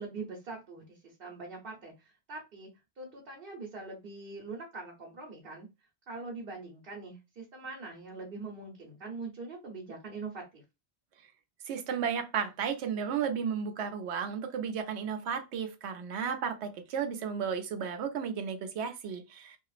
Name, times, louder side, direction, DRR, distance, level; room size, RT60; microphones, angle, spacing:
voice 1, 0.0-2.7 3.0-5.7 6.1-10.6, right 3 dB, 60° right, 1.0 m, -43 dB
voice 2, 11.7-19.6, right 7 dB, 85° right, 0.9 m, -33 dB
2.9 x 2.3 x 2.4 m
omnidirectional pair, 1.1 m